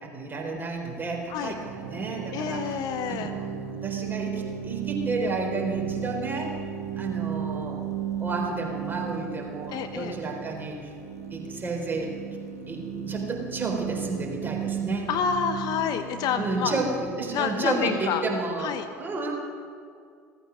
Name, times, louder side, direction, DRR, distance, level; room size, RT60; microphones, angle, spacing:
voice 1, 0.0-6.5 7.0-7.8 8.2-10.9 11.3-12.1 12.7-15.1 16.4-19.4, right 3 dB, 25° right, 1 dB, 3.8 m, -31 dB
sound 1, 0.9-18.5, right 8 dB, 80° right, 1.7 m, -35 dB
voice 2, 2.3-3.3 9.7-10.1 15.1-16.8 17.3-18.2 18.6-18.9, left 7 dB, 55° left, 8 dB, 1.0 m, -28 dB
16.0 x 14.0 x 6.2 m, 2.3 s
hypercardioid pair, 70°, 8 cm